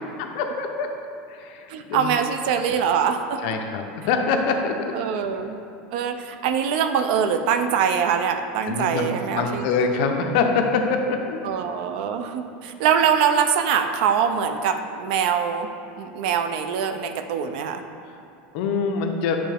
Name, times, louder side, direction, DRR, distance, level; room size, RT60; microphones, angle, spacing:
voice 1, 0.3-0.9 1.3-2.1 3.4-4.9 8.7-11.4 18.5-19.4, left 5 dB, 60° left, 4 dB, 0.6 m, -24 dB
voice 2, 1.7-3.4 4.9-5.6 5.9-9.7 11.4-15.7 16.0-17.8, right 7 dB, 65° right, 8 dB, 0.4 m, -23 dB
8.4 x 3.2 x 3.4 m, 2.7 s
supercardioid pair, 160°, 5 cm